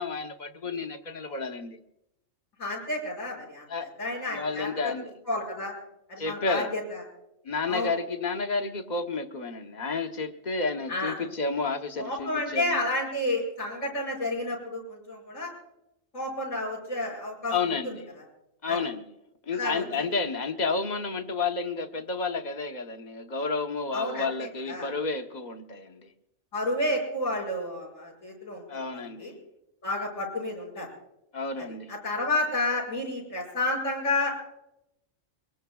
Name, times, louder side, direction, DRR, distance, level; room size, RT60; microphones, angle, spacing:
voice 1, 0.0-1.8 3.7-3.9 4.3-5.1 6.2-6.8 7.4-12.8 17.5-18.1 18.6-19.1 19.5-26.1 28.7-29.3 31.3-31.9, left 4 dB, 35° left, 1.0 m, -31 dB
voice 2, 2.6-4.9 5.3-5.7 6.1-7.0 7.7-7.9 10.9-11.2 12.0-15.5 16.1-17.5 17.8-18.0 18.7-18.8 19.5-19.8 23.9-24.3 24.7-24.9 26.5-29.3 29.8-30.9 31.6-34.3, left 2 dB, 75° left, 7.1 m, -31 dB
23.5 x 22.0 x 2.3 m
omnidirectional pair, 1.4 m